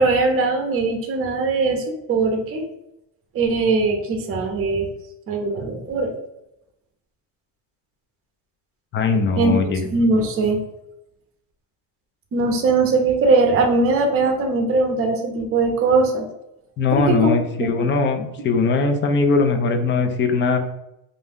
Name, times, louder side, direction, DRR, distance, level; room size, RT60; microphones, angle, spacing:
voice 1, 0.0-2.6 3.3-4.9 5.3-6.1 9.4-9.6 9.9-10.6 12.3-16.3 16.9-17.3 17.6-17.7, right 3 dB, 35° right, 4 dB, 0.6 m, -20 dB
voice 2, 8.9-9.8 16.8-20.6, left 4 dB, 30° left, 6 dB, 0.4 m, -20 dB
2.6 x 2.2 x 3.4 m, 0.86 s
cardioid pair, 130°, 39 cm